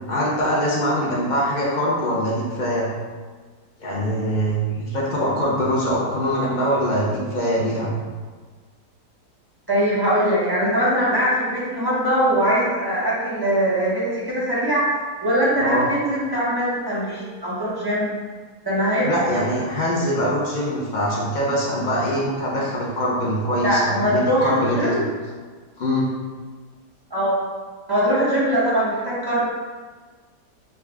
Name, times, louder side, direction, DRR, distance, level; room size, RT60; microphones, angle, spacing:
voice 1, 0.1-2.9 3.8-7.9 15.6-15.9 19.0-25.0 25.8-26.1, equal, 85° left, -5 dB, 0.4 m, -23 dB
voice 2, 9.7-14.9 15.2-18.2 18.6-19.3 23.6-25.1 27.1-27.4 27.9-29.4, equal, 15° right, -8 dB, 0.8 m, -21 dB
5.5 x 2.4 x 3.4 m, 1.5 s
omnidirectional pair, 1.8 m